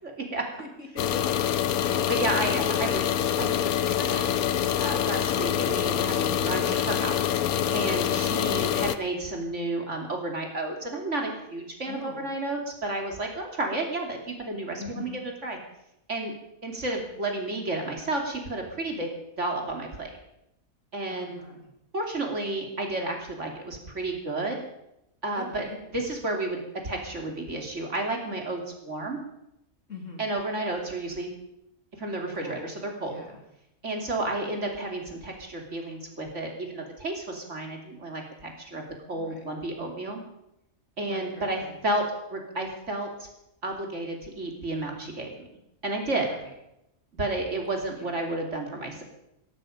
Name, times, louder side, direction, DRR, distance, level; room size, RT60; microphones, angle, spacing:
voice 1, 0.0-0.4 1.8-3.0 3.4-3.6 4.0-4.4 4.8-7.2 7.4-15.6 16.1-16.3 16.6-20.1 20.9-21.4 21.9-24.6 25.2-25.6 25.9-26.6 26.8-29.2 30.2-31.3 32.0-32.7 33.0-33.2 33.8-38.8 39.1-40.2 41.0-42.0 42.3-43.3 43.6-45.3 45.8-46.4 47.2-49.0, right 2 dB, 55° right, 2 dB, 3.2 m, -31 dB
voice 2, 0.6-1.8 11.8-12.3 14.8-15.2 21.1-21.7 25.3-25.8 29.9-30.2 32.4-32.7 33.0-33.4 39.1-39.4 41.1-41.8 46.3-46.5 47.9-48.2, left 3 dB, 60° left, 1 dB, 3.5 m, -42 dB
sound 1, 1.0-9.0, left 10 dB, 90° left, 1.3 m, -26 dB
17.0 x 15.0 x 5.2 m, 0.83 s
omnidirectional pair, 1.5 m